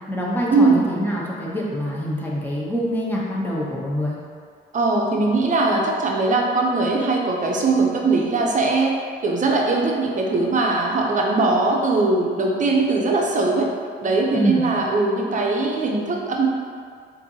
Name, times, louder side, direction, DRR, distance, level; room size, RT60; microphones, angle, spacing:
voice 1, 0.1-4.2 14.3-14.6, equal, 10° left, -5 dB, 0.8 m, -25 dB
voice 2, 4.7-9.0 9.2-13.7 14.0-16.5, right 3 dB, 40° right, -1 dB, 0.6 m, -20 dB
4.4 x 2.6 x 2.7 m, 2.1 s
cardioid pair, 90°, 20 cm